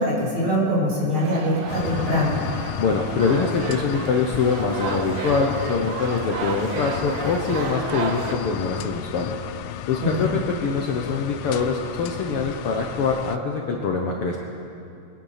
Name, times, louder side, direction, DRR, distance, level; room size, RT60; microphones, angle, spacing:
voice 1, 0.0-2.4 10.1-10.3, equal, 45° right, -6 dB, 4.3 m, -23 dB
sound 1, 1.1-8.3, right 5 dB, 85° right, 2.6 m, -33 dB
sound 2, 1.7-13.4, left 11 dB, 90° left, 2.0 m, -34 dB
voice 2, 2.8-9.4 9.9-14.4, left 4 dB, 65° left, 1 dB, 1.6 m, -24 dB
23.0 x 10.0 x 5.7 m, 2.7 s
omnidirectional pair, 3.4 m